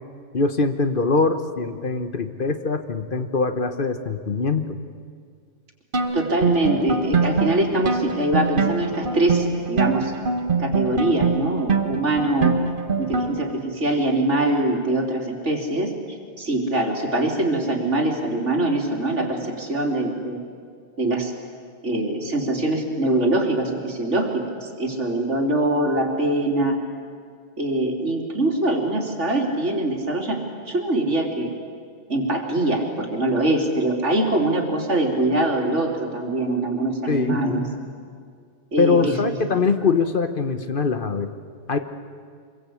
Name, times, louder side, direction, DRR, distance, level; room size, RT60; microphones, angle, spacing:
voice 1, 0.3-4.8 37.1-37.4 38.8-41.3 41.7-41.8, left 4 dB, 50° left, 8 dB, 1.2 m, -22 dB
sound 1, 5.9-13.6, right 4 dB, 45° right, 1.5 m, -24 dB
voice 2, 6.1-10.1 10.6-12.6 13.0-15.9 16.4-20.4 21.0-21.3 21.8-26.8 27.6-31.5 32.1-37.7 38.7-39.2 39.5-39.6, right 1 dB, 75° right, 2 dB, 3.3 m, -23 dB
26.5 x 22.0 x 8.5 m, 2.1 s
omnidirectional pair, 1.2 m